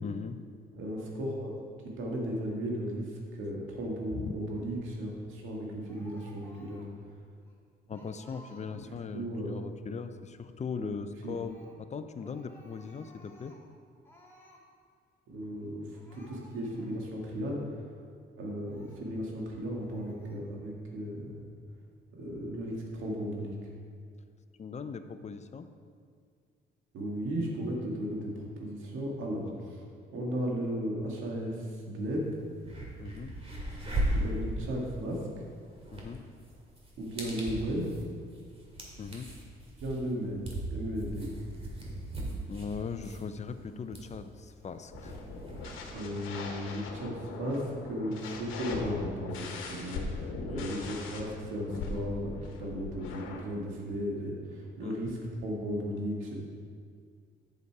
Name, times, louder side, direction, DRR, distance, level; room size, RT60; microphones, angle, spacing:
voice 1, 0.0-0.4 4.2-4.3 7.9-13.6 24.6-25.7 33.0-33.4 35.9-36.2 39.0-39.3 42.5-45.2 49.0-49.1 50.5-51.0 54.8-55.1, left 5 dB, 35° left, 10 dB, 0.5 m, -40 dB
voice 2, 0.7-6.8 8.9-9.5 10.8-10.9 11.2-11.3 15.3-17.6 18.4-21.4 22.2-23.6 26.9-29.8 30.1-32.3 34.1-35.3 37.0-37.9 39.8-41.3 45.9-49.3 49.7-56.4, equal, 85° right, -1 dB, 2.0 m, -35 dB
Speech, 5.9-7.0 7.5-7.6 7.9-9.0 11.2-11.8 12.2-13.7 14.0-14.6 15.5-15.7 15.9-17.0 17.6-17.7 18.6-19.1 19.8-20.4, equal, 10° left, 1.9 m, -57 dB
sound 1, 32.1-32.2 32.6-45.9, right 1 dB, 30° right, 2.3 m, -38 dB
sound 2, 44.9-53.4, left 3 dB, 90° left, 1.2 m, -40 dB
8.2 x 6.8 x 4.8 m, 2.1 s
cardioid pair, 90°, 20 cm